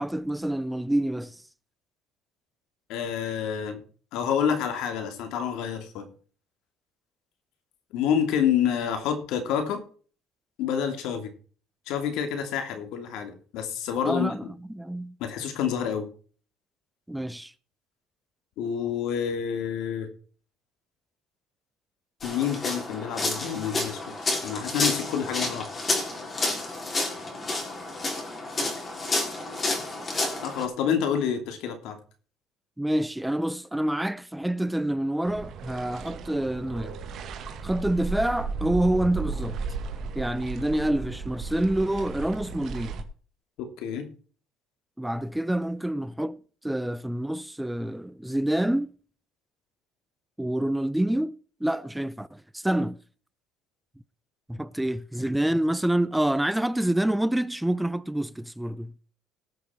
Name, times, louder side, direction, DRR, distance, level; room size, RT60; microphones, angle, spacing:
voice 1, 0.0-1.4 14.0-15.2 17.1-17.5 32.8-37.0 37.6-39.6 40.2-42.9 45.0-48.9 50.4-51.4 51.6-53.0 54.5-58.9, right 1 dB, 5° right, 0.5 m, -27 dB
voice 2, 2.9-3.8 4.1-6.1 7.9-9.8 10.6-11.3 11.9-14.4 15.2-16.1 18.6-20.1 22.2-24.0 24.4-25.7 30.4-32.0 43.6-44.1, left 8 dB, 75° left, 2.8 m, -28 dB
sound 1, 22.2-30.7, left 2 dB, 25° left, 3.7 m, -30 dB
sound 2, 35.3-43.0, right 4 dB, 55° right, 1.9 m, -35 dB
18.5 x 6.7 x 4.5 m
cardioid pair, 120°, 0 cm